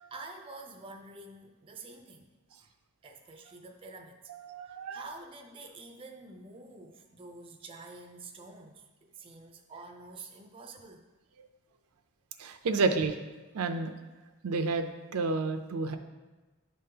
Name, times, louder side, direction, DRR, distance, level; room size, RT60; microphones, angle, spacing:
voice 1, 0.0-2.3 2.6-2.7 3.0-4.3 4.6-11.1, right 3 dB, 25° right, 3 dB, 0.4 m, -48 dB
voice 2, 4.3-5.0 12.4-13.1 13.5-13.9 14.4-16.0, right 3 dB, 80° right, 8 dB, 0.5 m, -30 dB
10.0 x 3.7 x 2.8 m, 1.2 s
head